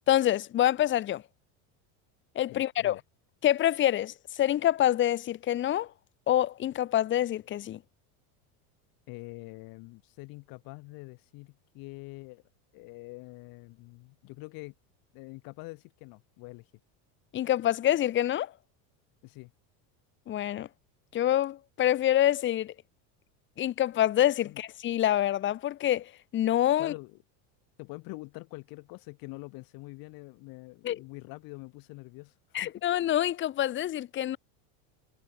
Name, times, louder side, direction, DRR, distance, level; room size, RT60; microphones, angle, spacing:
voice 1, 0.1-1.2 2.3-3.0 3.4-5.9 6.3-7.8 17.3-18.5 20.3-20.7 21.1-22.7 23.6-26.9 30.8-31.0 32.5-34.4, left 12 dB, 25° left, 1.1 m, -26 dB
voice 2, 2.5-3.0 9.1-12.4 12.7-14.7 15.1-16.7 19.2-19.5 24.4-24.6 26.8-27.2 27.8-32.7, left 25 dB, 55° left, 4.4 m, -45 dB
cardioid pair, 155°, 43 cm